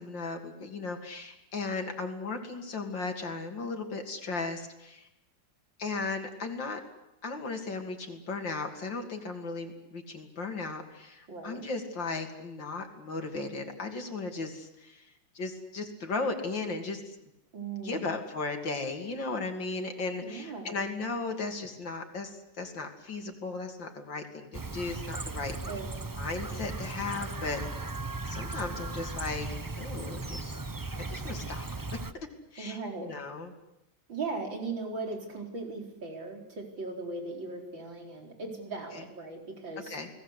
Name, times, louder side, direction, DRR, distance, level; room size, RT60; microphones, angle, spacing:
voice 1, 0.0-5.1 5.8-6.8 7.2-15.1 15.4-17.2 17.8-25.6 26.2-27.9 28.3-29.5 29.8-30.6 31.1-31.7 32.5-33.5 38.9-39.0 39.9-40.1, left 3 dB, 75° left, 4 dB, 3.5 m, -36 dB
voice 2, 11.3-11.6 17.5-18.1 20.2-20.7 25.7-25.9 32.6-33.1 34.1-40.0, right 3 dB, 90° right, 3 dB, 5.1 m, -38 dB
Chirp tweet, 24.5-32.1, right 3 dB, 25° right, 0.4 m, -37 dB
30.0 x 19.5 x 8.3 m, 0.89 s
omnidirectional pair, 2.0 m